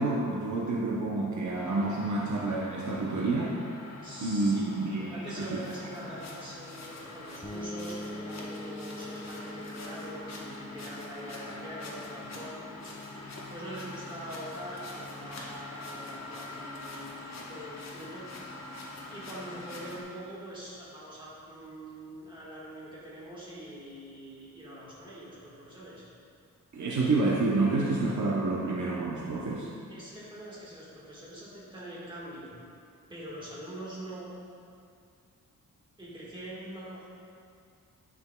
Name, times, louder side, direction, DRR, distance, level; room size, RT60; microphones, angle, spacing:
voice 1, 0.0-3.5 4.2-5.0 5.4-5.6 26.7-29.7, right 3 dB, 60° right, -4 dB, 0.7 m, -28 dB
sound 1, 1.5-20.0, left 2 dB, 55° left, 0.8 m, -44 dB
voice 2, 4.0-12.5 12.8-13.1 13.5-18.3 19.0-26.1 29.9-32.6 33.1-34.3 36.0-37.1, right 1 dB, 15° right, -7 dB, 1.5 m, -43 dB
sound 2, 7.4-17.0, left 1 dB, 5° left, 0.7 m, -45 dB
9.5 x 5.2 x 2.2 m, 2.3 s
wide cardioid pair, 150°, 33 cm